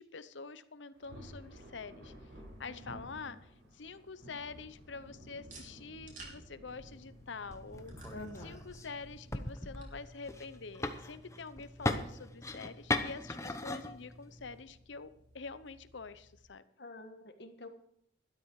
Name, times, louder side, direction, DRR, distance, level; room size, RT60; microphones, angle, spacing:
voice 1, 0.0-2.1 2.6-3.4 3.7-7.9 8.4-15.1 15.3-16.6, left 4 dB, 80° left, 14 dB, 0.8 m, -46 dB
Thunder, 0.9-14.8, equal, 85° right, 5.4 m, -55 dB
sound 1, 2.2-16.4, right 2 dB, 40° right, 3.4 m, -61 dB
voice 2, 2.7-3.4 8.1-8.6 16.8-17.7, left 2 dB, 60° left, 6 dB, 1.5 m, -48 dB
sound 2, 6.7-14.6, left 2 dB, 15° left, 0.9 m, -40 dB
13.0 x 12.5 x 4.8 m, 0.71 s
head